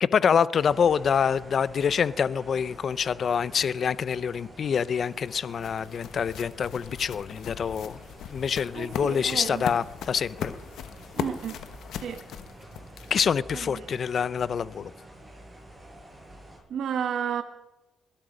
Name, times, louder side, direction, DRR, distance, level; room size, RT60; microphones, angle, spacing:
voice 1, 0.0-8.0 8.3-10.5 13.1-14.9, left 7 dB, 50° left, 18 dB, 0.6 m, -26 dB
sound 1, 0.6-16.6, right 1 dB, 20° right, 8.0 m, -48 dB
sound 2, 4.8-13.4, left 9 dB, 80° left, 1.1 m, -39 dB
voice 2, 8.7-9.6 11.2-11.6 12.0-12.2 13.5-14.0 16.7-17.4, right 8 dB, 70° right, 7 dB, 1.2 m, -32 dB
21.0 x 12.0 x 5.1 m, 0.98 s
cardioid pair, 90°, 0 cm